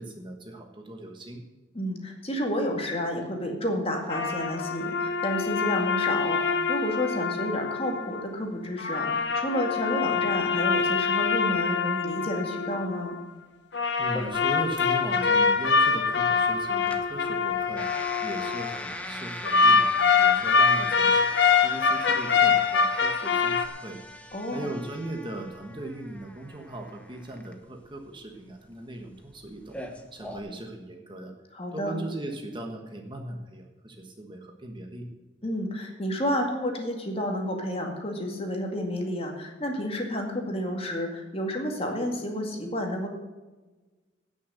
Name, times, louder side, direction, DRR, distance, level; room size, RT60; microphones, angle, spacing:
voice 1, 0.0-1.4 14.0-21.3 21.6-24.0 24.5-29.8 30.1-31.3 31.7-35.1, right 1 dB, 25° right, 3 dB, 1.3 m, -38 dB
voice 2, 1.7-13.2 24.3-24.7 31.5-31.9 35.4-43.1, equal, 30° left, 2 dB, 2.1 m, -30 dB
sound 1, 4.1-8.2 8.8-13.2 13.7-18.8 19.5-23.7, left 5 dB, 65° left, 1.0 m, -24 dB
sound 2, 14.1-30.4, left 1 dB, 5° left, 1.0 m, -41 dB
17.0 x 6.4 x 6.4 m, 1.2 s
head